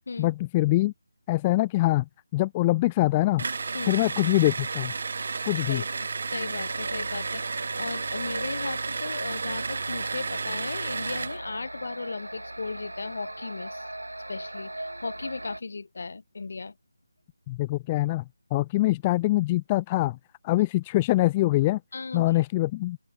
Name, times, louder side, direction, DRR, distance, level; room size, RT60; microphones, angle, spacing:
voice 1, 0.2-0.9 1.3-3.4 3.9-4.9 5.4-5.8 17.5-18.2 18.5-20.2 20.4-21.8 22.1-23.0, left 18 dB, 20° left, 0.3 m, -24 dB
sound 1, 3.4-11.4, right 4 dB, 50° right, 2.4 m, -32 dB
voice 2, 5.5-13.9 14.3-16.8 21.9-22.3, left 4 dB, 50° left, 4.5 m, -36 dB
sound 2, 6.1-15.6, right 1 dB, 80° right, 7.7 m, -39 dB
open air
figure-of-eight pair, 155°, 0 cm